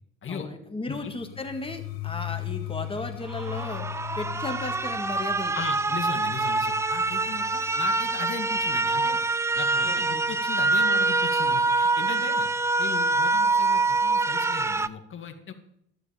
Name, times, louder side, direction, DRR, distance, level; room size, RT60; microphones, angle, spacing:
voice 1, 0.3-5.6 9.8-10.2, left 2 dB, 15° left, 5 dB, 2.0 m, -35 dB
sound 1, 0.9-10.7, left 16 dB, 85° left, 1.0 m, -39 dB
sound 2, 3.3-14.9, right 3 dB, 10° right, 0.4 m, -25 dB
voice 2, 5.5-9.2 9.6-12.5 12.8-15.5, left 6 dB, 40° left, 4 dB, 2.1 m, -37 dB
12.0 x 9.8 x 5.1 m, 0.77 s
supercardioid pair, 80°, 33 cm